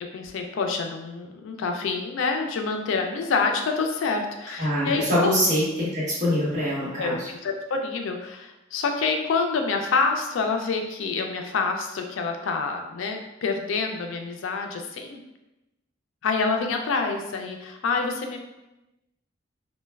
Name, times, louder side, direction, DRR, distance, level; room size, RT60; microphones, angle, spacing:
voice 1, 0.1-5.4 7.0-15.2 16.2-18.4, left 4 dB, 85° left, 4 dB, 0.4 m, -27 dB
voice 2, 4.6-7.3, equal, 35° right, -8 dB, 1.0 m, -24 dB
3.1 x 2.2 x 2.2 m, 0.97 s
head